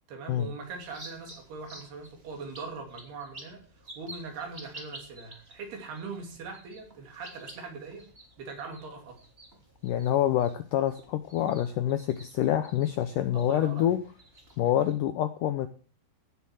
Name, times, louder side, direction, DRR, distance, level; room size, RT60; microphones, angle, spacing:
voice 1, 0.1-8.1 8.4-9.2 13.3-14.0, right 4 dB, 70° right, 3 dB, 5.1 m, -41 dB
sound 1, 0.6-14.9, right 1 dB, 15° right, 2.9 m, -51 dB
voice 2, 9.8-14.0 14.6-15.7, left 11 dB, 80° left, 10 dB, 1.9 m, -26 dB
17.0 x 7.0 x 6.4 m, 0.40 s
omnidirectional pair, 4.8 m